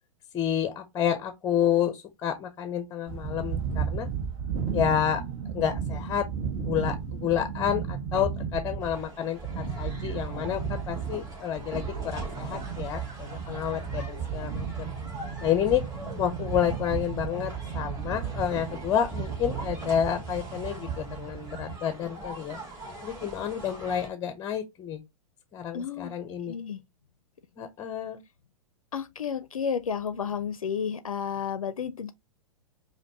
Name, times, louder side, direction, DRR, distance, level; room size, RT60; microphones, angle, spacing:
voice 1, 0.3-4.1 4.7-5.2 5.5-6.3 6.5-14.9 15.4-15.8 16.2-22.6 23.0-25.0 25.5-26.5 27.6-28.2, left 9 dB, 20° left, 0.6 m, -29 dB
sound 1, 3.1-21.8, right 6 dB, 45° right, 1.7 m, -34 dB
sound 2, 8.8-24.1, right 1 dB, 20° right, 2.4 m, -43 dB
voice 2, 25.7-26.1 26.5-26.8 28.9-32.1, left 7 dB, 80° left, 0.4 m, -31 dB
5.1 x 2.6 x 2.8 m
figure-of-eight pair, 100°, 17 cm